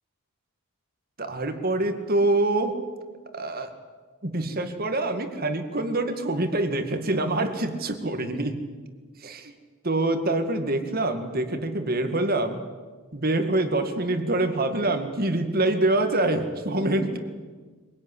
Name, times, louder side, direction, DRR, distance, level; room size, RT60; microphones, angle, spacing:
voice 1, 1.2-2.8 3.3-3.7 4.2-8.6 9.2-9.5 9.8-12.6 13.1-17.2, right 2 dB, 40° right, 7 dB, 2.1 m, -25 dB
24.0 x 18.0 x 9.9 m, 1.4 s
head